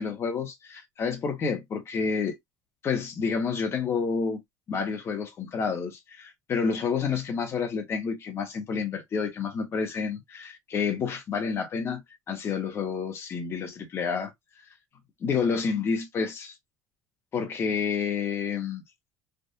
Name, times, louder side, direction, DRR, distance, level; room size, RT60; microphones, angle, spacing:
voice 1, 0.0-2.3 2.8-4.4 4.7-12.0 12.3-14.3 15.2-16.5 17.3-18.8, left 5 dB, 30° left, 1.1 m, -29 dB
3.6 x 2.5 x 2.7 m
cardioid pair, 155°, 8 cm